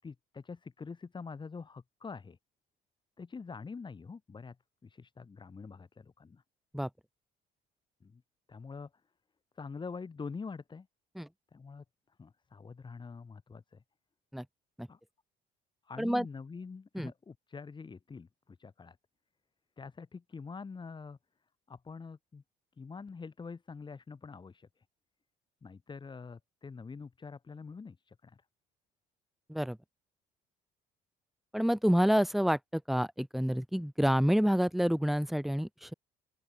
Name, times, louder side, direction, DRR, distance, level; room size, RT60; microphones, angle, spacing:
voice 1, 0.0-2.4 3.2-4.6 4.8-6.4 8.0-8.2 8.5-8.9 9.6-10.9 11.5-11.8 12.2-13.8 14.9-15.0 15.9-19.0 19.8-21.2 21.7-22.4 22.8-24.7 25.6-28.4, left 5 dB, 25° left, 7.6 m, -45 dB
voice 2, 31.5-35.9, equal, ahead, 2.2 m, -28 dB
open air
cardioid pair, 110°, 17 cm